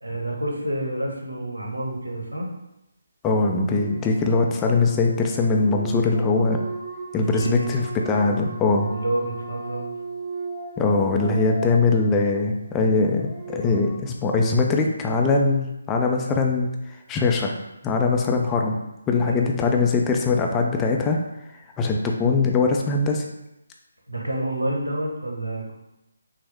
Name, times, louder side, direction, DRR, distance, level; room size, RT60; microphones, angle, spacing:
voice 1, 0.0-2.5 7.3-7.7 8.1-8.3 8.9-9.9 19.3-19.4 24.1-25.7, right 1 dB, 85° right, -1 dB, 1.0 m, -28 dB
voice 2, 3.2-6.6 7.1-8.9 10.8-17.5 17.8-18.8 19.1-21.2 21.8-23.2, left 3 dB, 15° left, 1 dB, 0.4 m, -21 dB
sound 1, 3.4-14.0, right 2 dB, 20° right, 1.0 m, -37 dB
5.8 x 2.1 x 3.5 m, 0.90 s
figure-of-eight pair, 145°, 0 cm